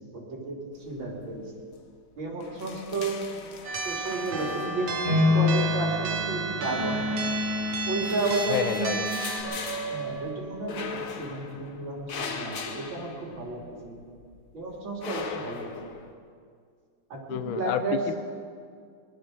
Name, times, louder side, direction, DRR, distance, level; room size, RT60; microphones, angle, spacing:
voice 1, 0.1-1.4 2.2-3.2 3.8-7.0 7.9-9.0 9.9-14.0 14.5-15.7 17.1-18.0, right 3 dB, 65° right, -2 dB, 3.5 m, -32 dB
sound 1, 0.9-1.4 1.6-1.8 2.1-5.3 6.2-7.1 7.6-13.8 14.2-16.1, left 5 dB, 50° left, 1.1 m, -39 dB
sound 2, 3.6-9.4, right 3 dB, 85° right, 2.2 m, -33 dB
sound 3, 5.0-10.1, left 2 dB, 30° left, 4.4 m, -28 dB
voice 2, 8.5-9.1 17.3-18.1, left 10 dB, 75° left, 10 dB, 1.5 m, -29 dB
19.5 x 12.0 x 6.2 m, 2.2 s
omnidirectional pair, 2.4 m